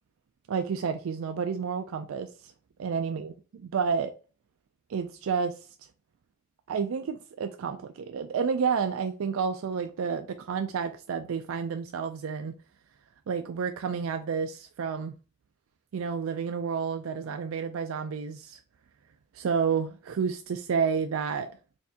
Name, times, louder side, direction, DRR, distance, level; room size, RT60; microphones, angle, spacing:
voice 1, 0.5-2.3 2.8-4.1 4.9-5.5 6.7-12.5 13.3-15.1 15.9-18.6 19.3-21.5, right 6 dB, 85° right, 0.4 m, -30 dB
4.3 x 2.6 x 2.7 m
head